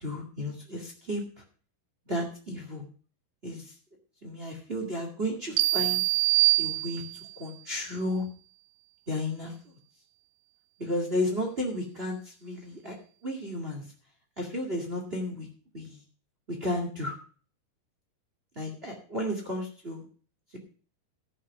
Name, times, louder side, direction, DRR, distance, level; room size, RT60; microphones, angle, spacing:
voice 1, 0.0-1.2 2.1-2.9 3.4-3.6 4.2-6.0 6.6-7.0 7.4-8.3 9.1-9.5 10.8-13.0 13.2-13.8 14.4-15.5 15.7-16.0 16.5-17.1 18.5-20.0, left 1 dB, 25° right, 1 dB, 1.2 m, -33 dB
sound 1, 5.6-7.4, right 24 dB, 80° right, 2.2 m, -24 dB
15.0 x 6.0 x 5.9 m, 0.40 s
omnidirectional pair, 4.7 m